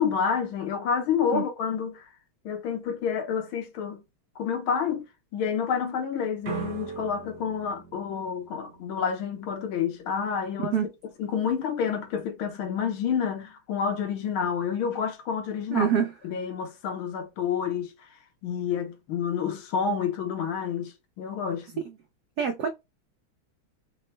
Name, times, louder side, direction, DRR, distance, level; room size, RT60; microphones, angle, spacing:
voice 1, 0.0-2.1 2.4-4.0 4.4-5.0 5.3-10.7 11.2-15.9 16.2-17.9 18.4-21.7, left 7 dB, 75° left, 1.7 m, -29 dB
sound 1, 6.4-9.3, right 6 dB, 55° right, 1.4 m, -39 dB
voice 2, 15.7-16.1 22.4-22.7, right 8 dB, 85° right, 0.8 m, -24 dB
3.9 x 2.1 x 4.3 m
omnidirectional pair, 2.3 m